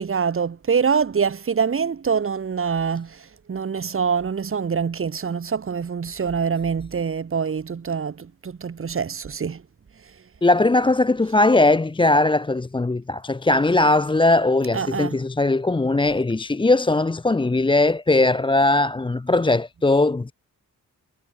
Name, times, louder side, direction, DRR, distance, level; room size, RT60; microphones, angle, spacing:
voice 1, 0.0-3.2 3.5-9.6 14.7-15.2, right 6 dB, 35° right, 1.0 m, -25 dB
voice 2, 10.4-20.3, left 2 dB, 15° left, 0.6 m, -19 dB
cardioid pair, 55°, 36 cm